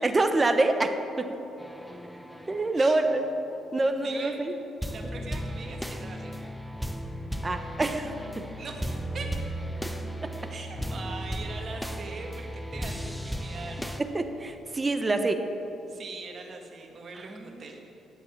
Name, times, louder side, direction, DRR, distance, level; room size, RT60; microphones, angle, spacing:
voice 1, 0.0-0.9 1.2-1.3 2.5-3.3 3.7-4.5 7.4-8.5 10.2-10.3 14.0-15.4 17.3-17.4, right 2 dB, 25° right, 7 dB, 1.0 m, -26 dB
sound 1, 1.6-4.4 4.7-14.0, equal, ahead, 0.8 m, -36 dB
voice 2, 4.0-4.4 4.8-6.4 8.6-9.5 10.5-13.9 15.9-17.8, right 4 dB, 50° right, 2 dB, 1.8 m, -41 dB
10.0 x 8.3 x 7.6 m, 2.9 s
cardioid pair, 90°, 0 cm